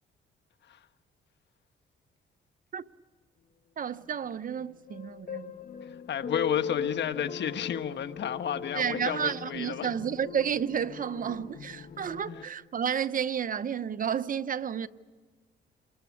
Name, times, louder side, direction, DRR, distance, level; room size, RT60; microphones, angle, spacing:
voice 1, 3.8-5.6 8.7-14.9, right 8 dB, 45° right, 0.8 m, -31 dB
sound 1, 4.6-12.5, left 7 dB, 45° left, 1.3 m, -39 dB
voice 2, 5.9-9.9 12.4-12.5, left 9 dB, 65° left, 1.3 m, -32 dB
28.5 x 20.5 x 8.5 m
cardioid pair, 90°, 20 cm